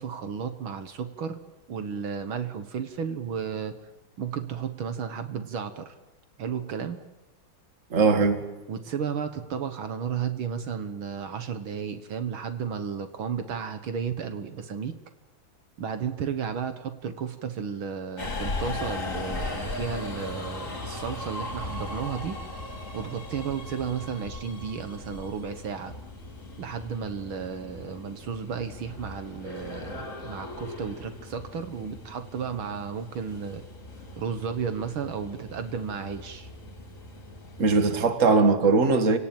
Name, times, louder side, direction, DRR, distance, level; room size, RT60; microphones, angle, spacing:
voice 1, 0.0-1.4 1.7-3.8 4.2-6.0 6.4-7.0 8.7-15.0 15.8-22.4 22.9-25.9 26.6-33.6 34.2-36.5, right 7 dB, 75° right, 9 dB, 2.2 m, -33 dB
voice 2, 7.9-8.5 37.6-39.2, right 4 dB, 40° right, 8 dB, 2.2 m, -20 dB
Subway metro underground, 18.2-38.1, left 2 dB, 35° left, 3.5 m, -38 dB
29.0 x 18.0 x 9.0 m, 1.1 s
omnidirectional pair, 2.3 m